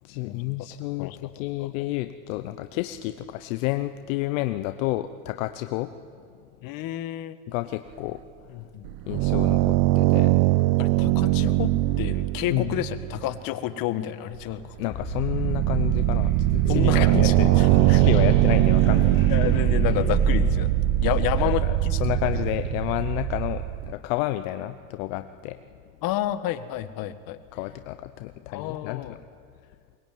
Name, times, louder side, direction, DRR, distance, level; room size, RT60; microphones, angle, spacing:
voice 1, 0.0-6.2 7.5-8.6 9.1-10.4 11.2-11.5 12.5-12.8 14.8-19.6 21.4-25.6 27.5-29.2, left 16 dB, 70° left, 10 dB, 1.0 m, -31 dB
voice 2, 6.6-7.4 8.5-8.9 10.8-11.7 12.0-14.8 16.7-18.0 19.3-20.7 21.0-22.0 22.3-22.5 26.0-27.4 28.5-29.1, left 13 dB, 55° left, 12 dB, 1.5 m, -30 dB
sound 1, 8.9-13.3 14.4-14.5 14.8-23.9, right 16 dB, 55° right, 1.0 m, -21 dB
sound 2, 14.9-20.5, left 1 dB, 30° left, 5.8 m, -33 dB
22.5 x 19.5 x 9.3 m, 2.3 s
supercardioid pair, 105°, 41 cm